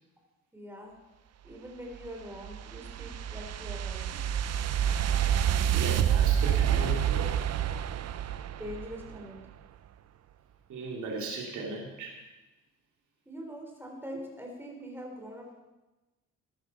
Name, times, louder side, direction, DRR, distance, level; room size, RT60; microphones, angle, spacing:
voice 1, 0.5-0.9 1.4-4.1 8.6-9.4 13.3-15.5, equal, 5° right, 0 dB, 3.9 m, -43 dB
sound 1, 1.9-9.2, right 10 dB, 60° right, 0.7 m, -28 dB
voice 2, 5.7-7.3 10.7-12.1, right 2 dB, 75° right, -2 dB, 3.0 m, -36 dB
13.5 x 10.5 x 5.8 m, 1.1 s
cardioid pair, 90°, 30 cm